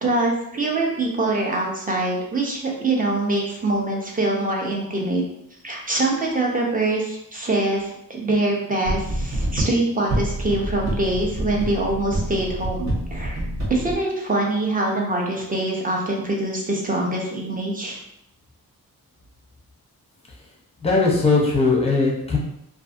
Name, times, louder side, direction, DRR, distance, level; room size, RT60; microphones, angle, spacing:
voice 1, 0.0-5.2 5.6-13.4 13.7-18.0, right 2 dB, 25° right, -1 dB, 0.6 m, -24 dB
sound 1, 8.8-13.9, right 1 dB, 50° right, 1.0 m, -27 dB
voice 2, 20.8-22.4, left 3 dB, 15° left, -2 dB, 0.7 m, -19 dB
2.6 x 2.5 x 2.5 m, 0.79 s
wide cardioid pair, 105°, 36 cm